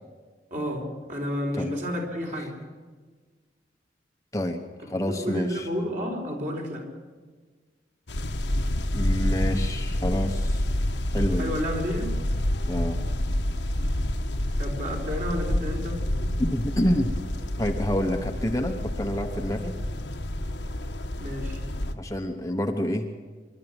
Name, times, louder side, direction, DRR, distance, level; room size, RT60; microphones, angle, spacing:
voice 1, 0.5-2.5 5.1-6.8 11.3-12.1 14.6-16.0 21.2-21.6, equal, 45° right, 1 dB, 4.9 m, -31 dB
voice 2, 4.3-5.7 8.9-10.6 11.1-11.5 12.7-13.0 16.4-17.1 17.6-19.7 21.9-23.1, left 1 dB, 15° left, 3 dB, 1.1 m, -28 dB
sound 1, 8.1-21.9, left 1 dB, 80° left, 1.4 m, -28 dB
25.5 x 12.5 x 9.0 m, 1.5 s
head